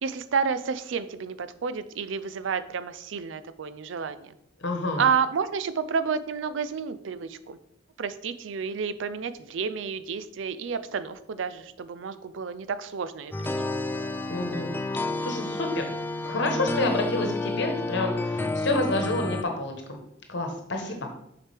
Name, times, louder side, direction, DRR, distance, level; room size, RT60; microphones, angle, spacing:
voice 1, 0.0-4.3 5.0-7.6 8.0-13.7, right 6 dB, 75° right, 13 dB, 0.4 m, -30 dB
voice 2, 4.6-5.1 14.3-15.8 16.2-20.0 20.3-21.1, left 2 dB, 65° left, 4 dB, 1.2 m, -29 dB
sound 1, 13.3-19.4, left 2 dB, 10° left, 0.3 m, -30 dB
7.2 x 4.9 x 3.4 m, 0.76 s
head